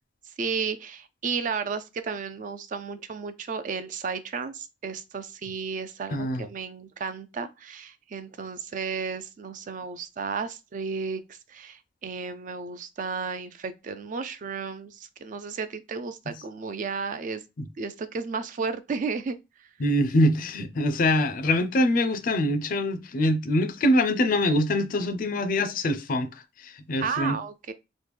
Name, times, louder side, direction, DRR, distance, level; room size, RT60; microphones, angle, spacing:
voice 1, 0.4-17.4 17.8-19.4 27.0-27.7, right 5 dB, 45° right, 0.3 m, -33 dB
voice 2, 6.1-6.5 19.8-26.3 26.6-27.4, left 1 dB, 50° left, 0.4 m, -24 dB
3.0 x 2.1 x 3.3 m
head